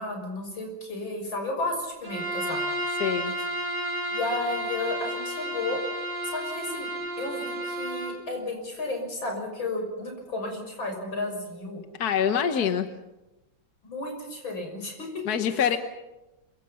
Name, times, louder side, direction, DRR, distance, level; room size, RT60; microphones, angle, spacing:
voice 1, 0.0-2.6 4.1-5.8 6.2-6.9 7.2-11.8 13.8-15.6, left 2 dB, 75° left, 3 dB, 7.2 m, -33 dB
Bowed string instrument, 2.0-8.2, right 1 dB, 25° right, 7.2 m, -32 dB
voice 2, 3.0-3.3 12.0-12.9 15.2-15.8, left 8 dB, 55° left, 7 dB, 1.5 m, -25 dB
26.5 x 25.0 x 5.8 m, 1.0 s
omnidirectional pair, 2.2 m